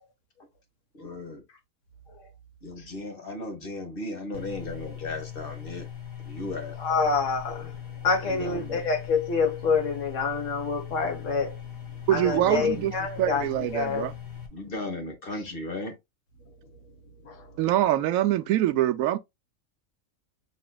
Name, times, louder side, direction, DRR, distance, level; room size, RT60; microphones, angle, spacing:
voice 1, 0.9-1.4 2.6-5.9 6.2-7.1 8.3-8.8 12.3-12.9 14.5-16.0, left 2 dB, 45° left, 1.4 m, -36 dB
sound 1, 4.3-14.5, left 9 dB, 85° left, 1.7 m, -40 dB
voice 2, 6.8-11.6 12.1-14.1 17.2-17.5, left 5 dB, 65° left, 1.4 m, -27 dB
voice 3, 12.1-14.1 17.6-19.2, right 13 dB, 80° right, 1.0 m, -24 dB
6.2 x 3.0 x 2.2 m
omnidirectional pair, 1.4 m